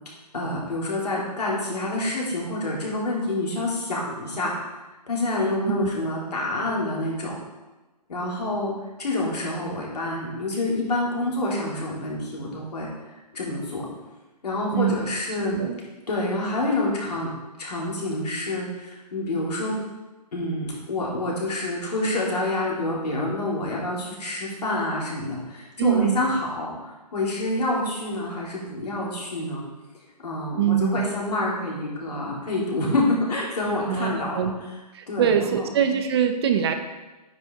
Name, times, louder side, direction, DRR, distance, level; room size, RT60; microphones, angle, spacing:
voice 1, 0.3-4.5 5.1-7.3 8.1-12.9 13.3-13.8 14.4-15.6 16.1-17.3 17.6-19.8 20.3-29.6 30.2-34.4 35.1-35.6, left 2 dB, 70° left, -4 dB, 2.8 m, -27 dB
voice 2, 25.8-26.2 30.6-31.1 33.8-34.5 34.9-36.7, right 8 dB, 40° right, 7 dB, 0.7 m, -23 dB
9.3 x 5.1 x 3.7 m, 1.1 s
hypercardioid pair, 140°, 21 cm